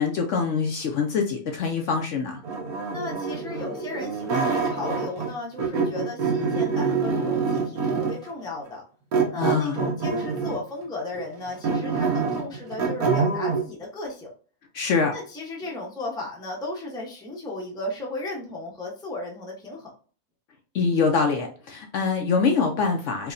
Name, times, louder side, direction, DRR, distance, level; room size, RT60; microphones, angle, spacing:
voice 1, 0.0-2.4 9.4-9.8 14.7-15.1 20.7-23.3, left 5 dB, 65° left, 3 dB, 0.8 m, -24 dB
sound 1, 2.4-5.3 5.6-8.3 9.1-10.7 11.1-13.6, right 5 dB, 85° right, 1.4 m, -26 dB
voice 2, 2.9-8.9 9.3-14.3 15.1-19.9, left 2 dB, 5° left, -2 dB, 0.5 m, -35 dB
4.7 x 2.2 x 2.6 m, 0.41 s
omnidirectional pair, 1.5 m